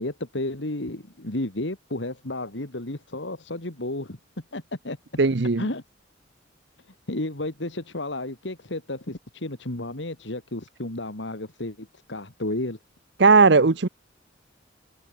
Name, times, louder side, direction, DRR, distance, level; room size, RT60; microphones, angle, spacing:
voice 1, 0.0-4.2 4.5-5.0 5.6-5.8 7.1-12.8, left 1 dB, 70° left, 2.3 m, -32 dB
voice 2, 5.2-5.6 13.2-13.9, right 4 dB, 65° right, 0.8 m, -17 dB
head